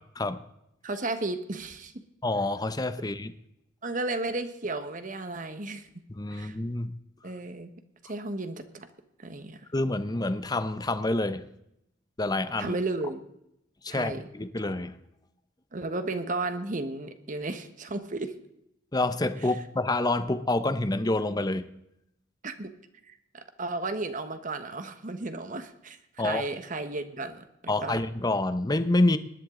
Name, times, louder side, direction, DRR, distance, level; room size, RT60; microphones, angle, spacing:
voice 1, 0.8-1.9 3.8-5.9 6.3-6.5 7.2-7.7 8.1-8.9 9.2-9.6 12.6-13.2 13.9-14.2 15.7-18.3 22.4-22.7 23.0-26.0 26.2-28.0, right 2 dB, 45° right, 9 dB, 1.3 m, -34 dB
voice 2, 2.2-3.3 6.1-6.9 9.7-11.5 12.2-12.8 13.8-15.0 18.9-21.7 26.2-26.4 27.7-29.2, left 2 dB, 20° left, 12 dB, 0.8 m, -27 dB
20.5 x 11.0 x 3.8 m, 0.80 s
head